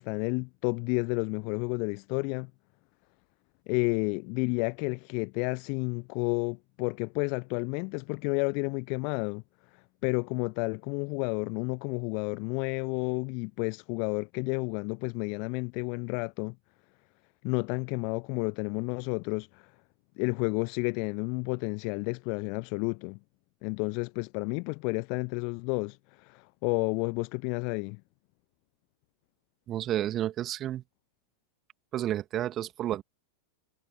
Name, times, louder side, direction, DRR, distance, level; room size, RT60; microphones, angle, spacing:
voice 1, 0.0-2.5 3.7-9.4 10.0-16.5 17.4-19.7 20.2-23.2 23.6-28.0, left 37 dB, 45° left, 1.0 m, -31 dB
voice 2, 29.7-30.8 31.9-33.0, right 12 dB, 30° right, 2.3 m, -31 dB
figure-of-eight pair, 90°, 0 cm